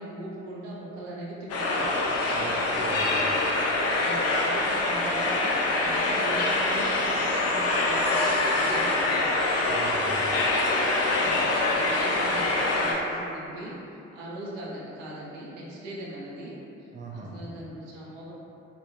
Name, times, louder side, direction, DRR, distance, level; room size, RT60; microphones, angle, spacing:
voice 1, 0.0-1.9 3.9-8.2 8.6-9.2 11.2-13.8 14.1-16.6 17.1-18.3, right 1 dB, 85° right, -5 dB, 0.5 m, -39 dB
sound 1, 1.5-12.9, left 2 dB, 45° left, 0.5 m, -25 dB
voice 2, 2.3-3.2 9.7-10.3 16.9-17.4, right 3 dB, 20° right, -1 dB, 0.3 m, -40 dB
2.2 x 2.1 x 2.7 m, 2.8 s
figure-of-eight pair, 40°, 37 cm